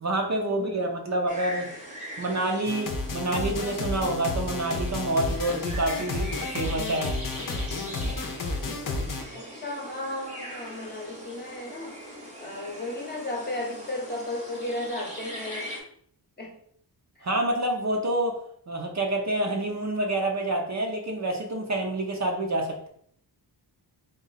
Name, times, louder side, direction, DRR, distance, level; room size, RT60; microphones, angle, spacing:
voice 1, 0.0-1.7 2.2-7.1 17.2-18.4 18.7-22.9, right 1 dB, 40° right, 2 dB, 0.6 m, -27 dB
sound 1, 1.3-15.8, equal, 15° right, 0.9 m, -41 dB
sound 2, 2.7-9.2, left 3 dB, 50° left, 0.7 m, -31 dB
voice 2, 9.3-12.0 12.4-15.7 16.4-16.5 17.2-17.3, left 1 dB, 25° left, 0 dB, 0.9 m, -34 dB
3.9 x 2.3 x 4.0 m, 0.65 s
wide cardioid pair, 115°, 43 cm